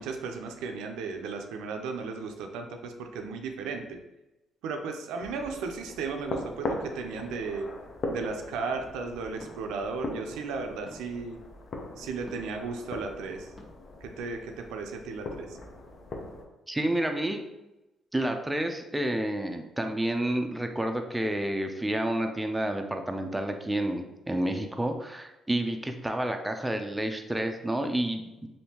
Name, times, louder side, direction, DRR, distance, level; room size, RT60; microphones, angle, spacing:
voice 1, 0.0-4.0 4.6-7.7 8.1-11.4 12.0-13.5 14.0-15.6, right 4 dB, 90° right, 4 dB, 0.4 m, -35 dB
sound 1, 5.2-16.4, left 2 dB, 55° left, 0.6 m, -40 dB
sound 2, 5.4-5.6 7.2-7.5 9.4-9.6 10.8-11.1 12.3-12.6 13.6-13.7, equal, 20° left, 0.9 m, -49 dB
voice 2, 16.7-17.5 18.1-28.5, right 1 dB, 10° right, 5 dB, 0.4 m, -30 dB
3.4 x 2.6 x 2.8 m, 0.97 s
cardioid pair, 80°, 0 cm